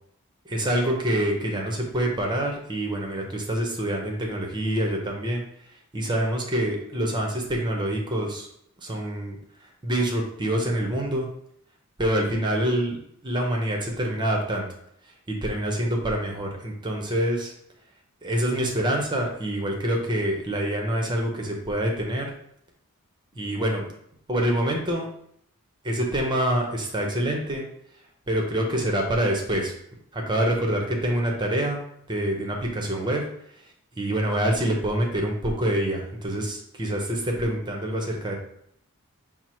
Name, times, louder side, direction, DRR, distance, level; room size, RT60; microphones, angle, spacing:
voice 1, 0.4-5.4 5.9-8.5 8.8-9.4 9.8-11.3 12.0-13.0 13.2-14.7 15.3-17.5 18.2-22.3 23.3-23.8 24.3-25.1 25.8-27.6 28.3-29.7 30.1-31.8 32.1-33.2 34.0-38.4, right 1 dB, 20° right, 0 dB, 0.7 m, -26 dB
4.5 x 2.0 x 4.3 m, 0.70 s
head